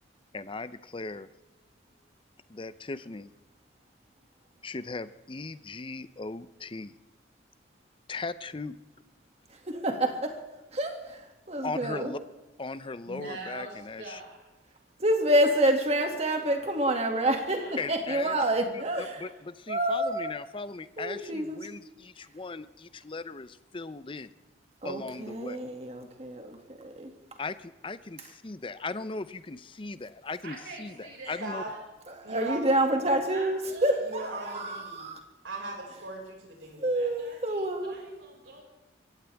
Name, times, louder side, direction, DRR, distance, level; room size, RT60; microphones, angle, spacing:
voice 1, 0.3-1.3 2.5-3.3 4.6-6.9 8.1-8.8 11.6-12.2 12.6-14.2 17.8-18.4 19.2-24.3 24.8-25.6 27.4-31.6, left 3 dB, 25° left, 14 dB, 0.6 m, -38 dB
voice 2, 9.5-12.1 15.0-19.3 19.7-20.3 21.0-21.6 24.8-27.4 28.2-28.3 32.1-35.2 36.8-38.0, right 1 dB, 35° right, 4 dB, 2.2 m, -28 dB
voice 3, 13.0-14.4 17.5-17.8 30.4-31.8 33.3-33.9 34.2-34.8 36.9-38.7, right 2 dB, 65° right, -1 dB, 5.7 m, -45 dB
voice 4, 31.4-31.7 32.2-32.6 34.1-35.0 35.4-36.9, right 2 dB, 85° right, -1 dB, 5.4 m, -38 dB
23.0 x 16.5 x 3.5 m, 1.1 s
head